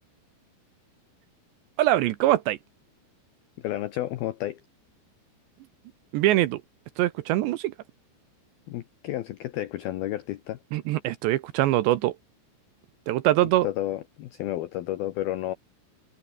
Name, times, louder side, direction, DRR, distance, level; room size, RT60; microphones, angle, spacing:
voice 1, 1.8-2.6 6.1-6.6 7.0-7.7 10.7-12.2 13.1-13.7, right 15 dB, 75° right, 2.8 m, -23 dB
voice 2, 3.6-4.6 8.7-10.6 13.6-15.5, left 14 dB, 85° left, 2.1 m, -31 dB
omnidirectional pair, 5.8 m